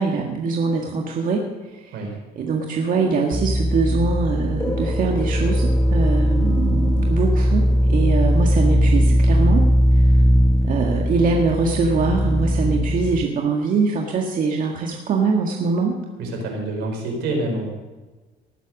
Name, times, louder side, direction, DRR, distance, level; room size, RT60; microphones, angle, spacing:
voice 1, 0.0-1.9 2.4-9.6 9.9-10.1 10.6-16.0, right 4 dB, 55° right, 1 dB, 1.8 m, -23 dB
sound 1, 3.3-13.2, equal, ahead, 0.4 m, -19 dB
sound 2, 4.6-13.3, equal, 15° left, 1.9 m, -36 dB
voice 2, 16.2-17.7, right 2 dB, 80° right, 2 dB, 4.5 m, -27 dB
19.0 x 8.1 x 6.4 m, 1.3 s
cardioid pair, 110°, 17 cm